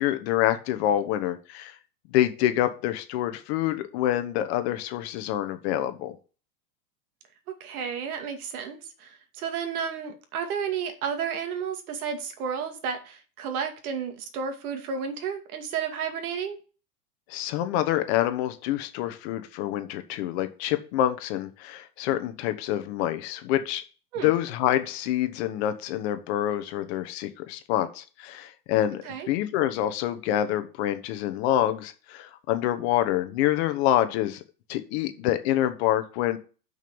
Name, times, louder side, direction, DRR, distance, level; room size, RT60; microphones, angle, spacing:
voice 1, 0.0-1.7 2.1-6.1 17.3-23.8 24.2-34.4 34.7-36.4, left 12 dB, 40° left, 9 dB, 1.0 m, -26 dB
voice 2, 7.5-16.6 24.1-24.3 29.0-29.3, right 7 dB, 60° right, 6 dB, 2.4 m, -32 dB
6.3 x 5.4 x 7.1 m, 0.35 s
supercardioid pair, 145°, 49 cm